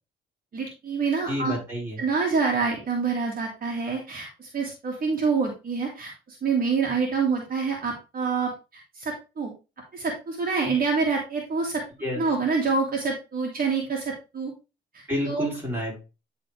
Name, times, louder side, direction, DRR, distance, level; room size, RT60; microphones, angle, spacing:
voice 1, 0.5-1.5 2.0-8.5 8.9-9.5 9.9-11.8 12.1-14.5 14.9-15.5, right 4 dB, 45° right, -1 dB, 2.2 m, -26 dB
voice 2, 1.3-2.0 12.0-12.2 15.1-15.9, left 1 dB, 10° right, -3 dB, 4.6 m, -29 dB
10.0 x 4.2 x 3.3 m, 0.28 s
cardioid pair, 90°, 20 cm